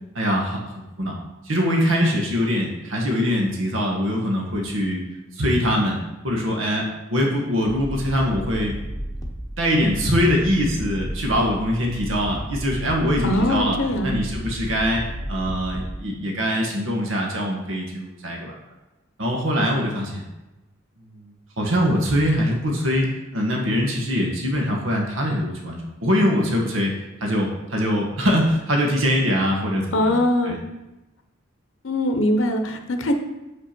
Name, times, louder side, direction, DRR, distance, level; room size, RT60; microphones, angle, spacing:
voice 1, 0.1-1.2 1.4-5.0 5.3-8.7 9.6-13.8 14.0-15.0 15.3-18.5 19.2-20.2 21.1-23.1 23.3-26.9 27.2-30.1 30.4-30.6, equal, 75° right, 0 dB, 1.3 m, -23 dB
sound 1, 7.7-16.0, equal, 15° left, 0.8 m, -32 dB
voice 2, 13.2-14.1 29.9-30.6 31.8-33.1, left 1 dB, 70° left, 5 dB, 0.7 m, -22 dB
6.7 x 5.4 x 4.4 m, 1.0 s
head